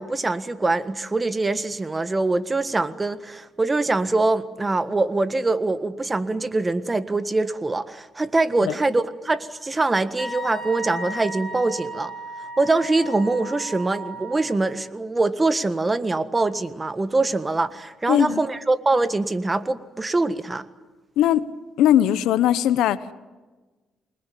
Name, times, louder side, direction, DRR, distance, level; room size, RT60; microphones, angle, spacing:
voice 1, 0.0-12.1 12.6-20.6, right 2 dB, 20° right, 13 dB, 1.5 m, -23 dB
Wind instrument woodwind instrument, 10.2-14.6, right 1 dB, ahead, 5.8 m, -35 dB
voice 2, 18.1-18.4 21.2-21.5 21.8-23.1, left 11 dB, 90° left, 15 dB, 1.1 m, -19 dB
27.5 x 21.0 x 9.4 m, 1.3 s
cardioid pair, 90°, 0 cm